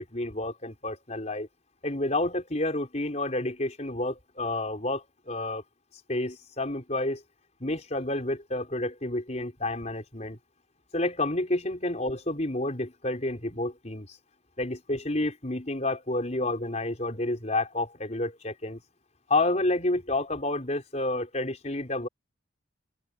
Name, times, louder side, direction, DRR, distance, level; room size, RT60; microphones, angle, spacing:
voice 1, 0.0-1.5 1.8-5.6 6.1-7.2 7.6-10.4 10.9-14.2 14.6-18.8 19.3-22.1, left 2 dB, 35° left, 4.7 m, -30 dB
open air
head